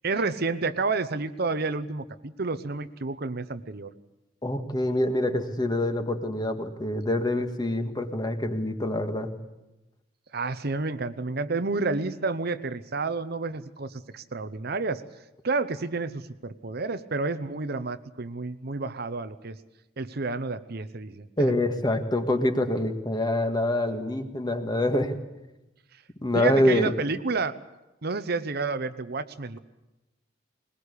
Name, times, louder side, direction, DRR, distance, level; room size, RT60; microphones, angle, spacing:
voice 1, 0.0-3.9 10.3-15.0 15.4-19.6 20.0-21.5 26.3-27.6 28.0-29.6, right 3 dB, 55° right, 11 dB, 0.9 m, -30 dB
voice 2, 4.4-9.3 21.4-25.1 26.2-26.9, left 1 dB, 25° left, 6 dB, 1.8 m, -26 dB
21.0 x 20.5 x 8.4 m, 0.99 s
head